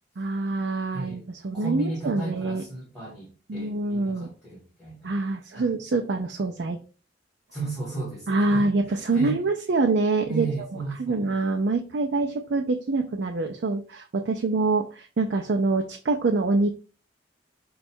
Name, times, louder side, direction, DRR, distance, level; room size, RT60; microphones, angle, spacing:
voice 1, 0.2-2.6 3.5-4.3 5.0-6.8 8.3-10.7 11.0-16.7, right 3 dB, 65° right, 0.4 m, -25 dB
voice 2, 0.9-1.2 1.5-5.1 5.5-5.7 7.5-9.4 10.3-11.3, right 3 dB, ahead, 1.6 m, -34 dB
5.2 x 2.3 x 4.3 m
head